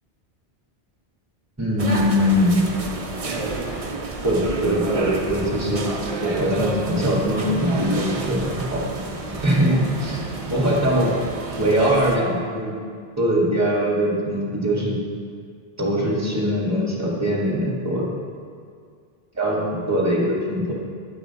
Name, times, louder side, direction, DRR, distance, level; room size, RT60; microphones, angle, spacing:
voice 1, 1.6-2.6 4.2-5.9 6.2-8.8 9.4-10.2 10.5-11.1 11.6-12.7 13.2-15.0 15.8-18.1 19.4-19.6 19.9-20.7, equal, 15° right, -4 dB, 1.8 m, -21 dB
sound 1, 1.8-12.2, right 3 dB, 35° right, 0.8 m, -30 dB
10.5 x 8.2 x 4.1 m, 2.1 s
omnidirectional pair, 1.1 m